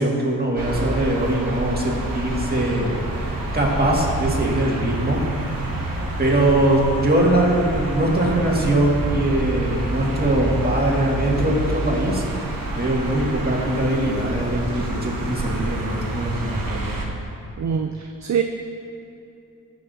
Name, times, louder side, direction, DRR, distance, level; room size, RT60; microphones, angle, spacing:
voice 1, 0.0-5.2 6.2-12.2 12.7-16.9, right 1 dB, 25° right, -3 dB, 2.0 m, -22 dB
sound 1, 0.6-17.1, right 1 dB, 75° right, 1.1 m, -28 dB
voice 2, 17.6-18.4, right 7 dB, 55° right, 5 dB, 0.5 m, -24 dB
15.5 x 6.1 x 2.7 m, 2.7 s
cardioid pair, 65°, 35 cm